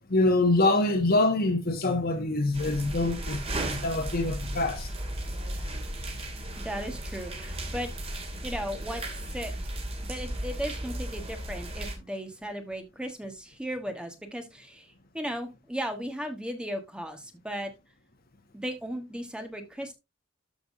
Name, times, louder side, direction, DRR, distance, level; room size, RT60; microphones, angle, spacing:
voice 1, 0.1-4.9, left 2 dB, 50° left, 1.6 m, -25 dB
sound 1, 2.5-12.0, right 1 dB, 30° right, 2.4 m, -35 dB
voice 2, 6.6-7.9 8.4-9.0 9.3-9.5 10.0-17.7 18.5-19.9, equal, 5° right, 1.4 m, -36 dB
13.0 x 5.9 x 2.7 m
head